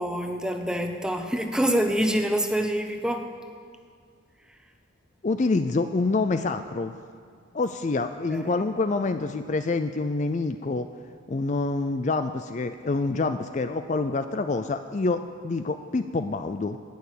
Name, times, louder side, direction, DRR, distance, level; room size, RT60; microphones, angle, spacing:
voice 1, 0.0-3.3 8.3-8.5, equal, 5° right, 5 dB, 0.8 m, -26 dB
voice 2, 5.2-6.9 7.5-10.9 11.3-16.8, left 3 dB, 35° left, 9 dB, 0.4 m, -27 dB
18.5 x 6.9 x 8.4 m, 2.1 s
head